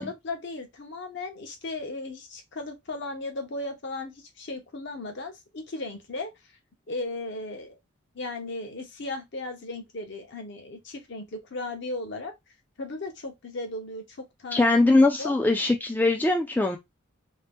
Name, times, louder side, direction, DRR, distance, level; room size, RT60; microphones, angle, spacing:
voice 1, 0.0-6.3 6.9-7.8 8.1-12.3 12.8-14.8 15.2-15.4, left 2 dB, 55° left, 0.8 m, -36 dB
voice 2, 14.5-16.8, left 2 dB, 10° left, 0.3 m, -21 dB
2.7 x 2.1 x 3.4 m
head